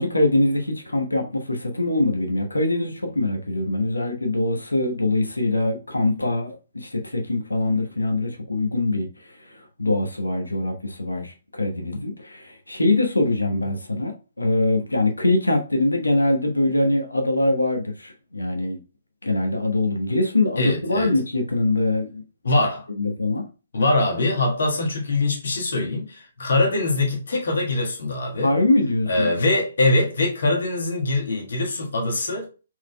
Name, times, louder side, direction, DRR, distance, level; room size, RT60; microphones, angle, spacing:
voice 1, 0.0-9.1 9.4-18.8 19.2-22.2 22.9-23.4 28.4-29.3, left 2 dB, 85° left, 1.1 m, -23 dB
voice 2, 20.6-21.1 22.4-22.8 23.7-28.5 29.1-32.5, left 2 dB, 65° left, 1.4 m, -23 dB
4.6 x 4.0 x 2.2 m
figure-of-eight pair, 135°, 0 cm